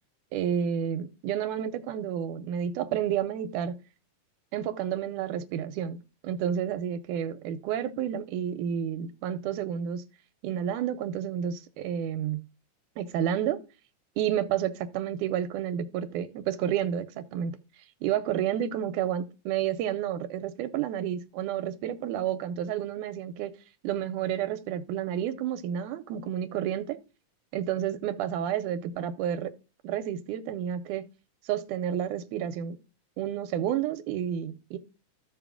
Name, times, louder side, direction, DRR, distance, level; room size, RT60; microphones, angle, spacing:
voice 1, 0.3-3.8 4.5-6.0 6.2-10.1 10.4-12.4 13.0-13.6 14.2-17.6 18.0-23.5 23.8-27.0 27.5-29.5 29.8-31.1 31.5-32.8 33.2-34.8, right 9 dB, 90° right, 2.1 m, -30 dB
15.0 x 5.4 x 2.4 m
omnidirectional pair, 3.6 m